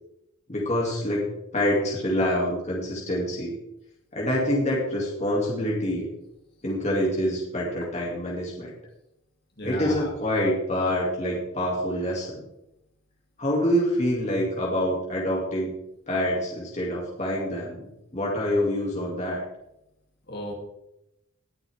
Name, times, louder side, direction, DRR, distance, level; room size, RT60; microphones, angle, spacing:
voice 1, 0.5-3.6 4.1-6.1 6.6-8.7 9.6-12.4 13.4-15.7 16.1-19.4, equal, 30° left, -3 dB, 2.6 m, -26 dB
voice 2, 9.6-10.1 20.3-20.5, left 1 dB, 50° left, 0 dB, 2.9 m, -33 dB
19.5 x 8.3 x 3.6 m, 0.85 s
head